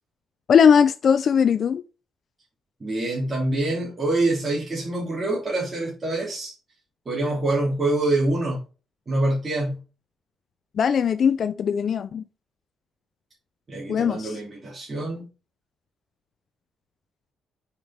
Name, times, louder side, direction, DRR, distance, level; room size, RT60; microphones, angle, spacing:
voice 1, 0.5-1.8 10.8-12.2 13.9-14.4, left 7 dB, 55° left, 0.4 m, -19 dB
voice 2, 2.8-6.5 7.0-8.6 9.1-9.8 13.7-15.2, right 2 dB, 30° right, 3.3 m, -25 dB
5.7 x 5.1 x 4.4 m
cardioid pair, 90°, 0 cm